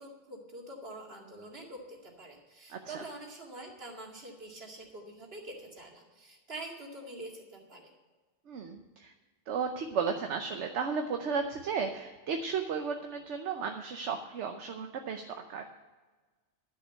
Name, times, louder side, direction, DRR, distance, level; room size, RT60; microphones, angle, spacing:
voice 1, 0.0-7.9, right 2 dB, 55° right, 0 dB, 2.5 m, -45 dB
voice 2, 2.7-3.0 8.5-9.1 9.5-15.6, right 5 dB, 70° right, 5 dB, 1.1 m, -34 dB
11.0 x 6.7 x 8.0 m, 1.3 s
omnidirectional pair, 1.2 m